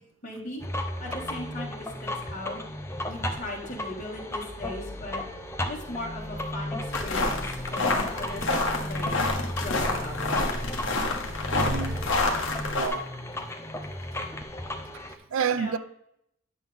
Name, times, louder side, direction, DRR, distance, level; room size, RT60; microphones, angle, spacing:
voice 1, 0.2-2.6 3.1-9.2 9.6-10.2 15.4-15.8, left 1 dB, 35° left, 2.0 m, -38 dB
sound 1, 0.6-15.1, left 1 dB, 10° left, 0.6 m, -34 dB
sound 2, 6.9-12.9, left 2 dB, 60° left, 1.3 m, -28 dB
voice 2, 11.5-12.0 12.8-13.1 15.3-15.8, right 7 dB, 70° right, 0.4 m, -29 dB
9.3 x 6.2 x 3.6 m
head